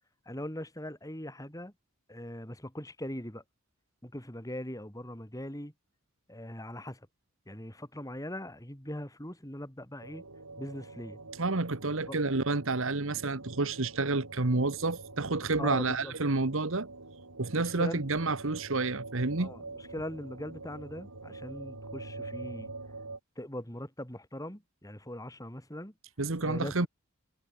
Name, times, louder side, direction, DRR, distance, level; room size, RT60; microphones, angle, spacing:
voice 1, 0.3-1.7 2.1-3.4 4.0-5.7 6.3-7.1 7.5-10.2 10.6-11.2 12.1-12.4 15.6-16.1 17.5-18.1 19.4-22.7 23.4-25.9 26.4-26.9, left 1 dB, 15° left, 3.8 m, -41 dB
sound 1, 10.0-23.2, right 3 dB, 90° right, 4.2 m, -45 dB
voice 2, 11.4-16.9 17.4-19.5 26.2-26.9, right 3 dB, 60° right, 1.3 m, -29 dB
head